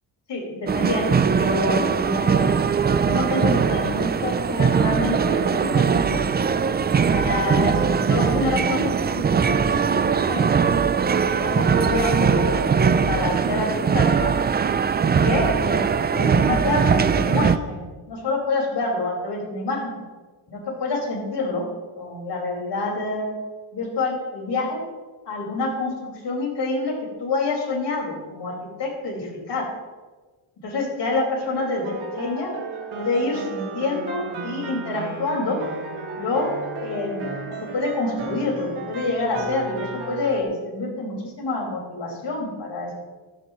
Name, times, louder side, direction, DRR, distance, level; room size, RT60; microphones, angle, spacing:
voice 1, 0.3-6.2 7.1-10.7 11.2-14.3 15.1-20.0 20.5-21.6 22.0-23.3 23.7-24.8 25.3-26.9 27.2-28.5 28.8-29.7 30.6-32.5 32.9-35.6 36.2-36.6 36.8-42.9, left 3 dB, 60° left, -2 dB, 5.3 m, -27 dB
sound 1, 0.7-17.6, right 6 dB, 25° right, 0.4 m, -21 dB
sound 2, 31.4-40.4, right 3 dB, 85° right, 3.1 m, -34 dB
17.0 x 14.0 x 3.1 m, 1.3 s
cardioid pair, 125°, 47 cm